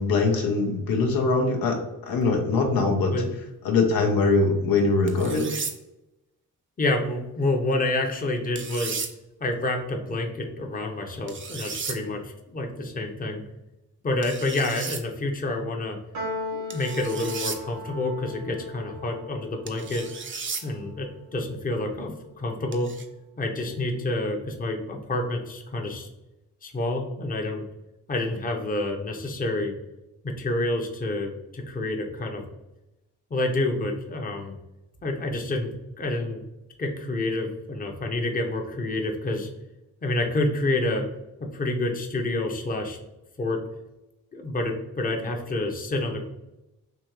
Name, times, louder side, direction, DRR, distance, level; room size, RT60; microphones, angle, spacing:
voice 1, 0.0-3.1 3.6-5.6, left 3 dB, 85° left, 3 dB, 0.8 m, -22 dB
sound 1, 5.1-5.7 8.6-9.1 11.3-12.0 14.2-15.0 16.7-17.6 19.7-20.6 22.7-23.1, right 5 dB, 35° right, 0.5 m, -34 dB
voice 2, 6.8-9.0 9.4-13.4 14.0-16.0 16.5-20.0 20.6-22.9 23.4-26.1 26.6-27.6 28.1-29.7 30.2-32.4 33.3-34.5 35.0-35.7 36.0-36.4 36.8-39.5 40.0-41.0 41.5-43.0 43.4-43.6 44.3-46.3, left 2 dB, 25° left, 2 dB, 0.7 m, -28 dB
Piano, 16.1-22.7, left 1 dB, 85° right, 1.2 m, -39 dB
3.6 x 2.7 x 2.9 m, 0.96 s
cardioid pair, 75°, 35 cm